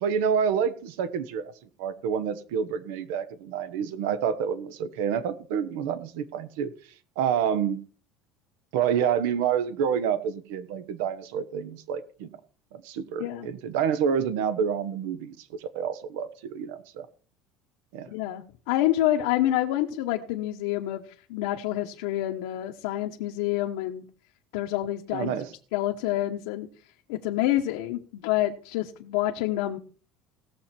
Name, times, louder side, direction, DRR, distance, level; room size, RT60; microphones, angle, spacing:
voice 1, 0.0-1.5 1.8-6.7 7.2-7.8 8.7-12.3 12.7-17.1 17.9-18.1 25.1-25.5, right 7 dB, 90° right, 14 dB, 1.2 m, -28 dB
voice 2, 18.1-24.0 24.5-25.3 25.7-26.7 27.1-29.8, left 14 dB, 85° left, 1 dB, 1.2 m, -27 dB
18.0 x 7.2 x 4.5 m, 0.41 s
cardioid pair, 160°, 0 cm